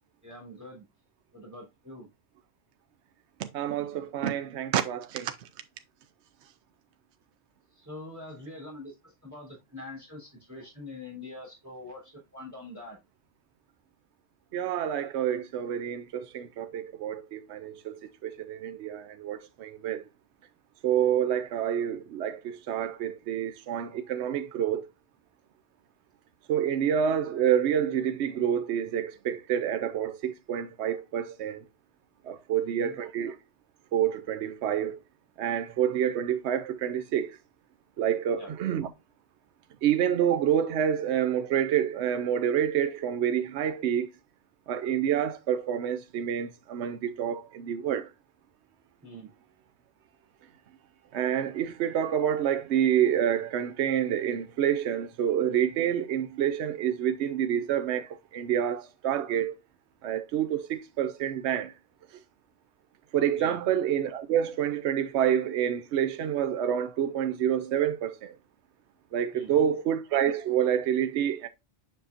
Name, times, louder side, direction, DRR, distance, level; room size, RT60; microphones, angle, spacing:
voice 1, 0.2-0.8 1.3-2.1 7.7-13.0 32.6-33.0 38.4-38.5 49.0-49.3 63.4-63.6 69.3-69.7, left 2 dB, 15° right, 3.2 m, -44 dB
voice 2, 3.4-5.3 14.5-20.0 20.8-24.8 26.5-31.6 32.2-33.4 33.9-35.0 35.4-37.4 38.0-38.9 39.8-44.1 44.7-48.1 51.1-59.5 60.0-61.7 63.1-68.3 69.1-71.5, right 9 dB, 80° right, 0.9 m, -28 dB
7.5 x 5.6 x 2.5 m
omnidirectional pair, 1.1 m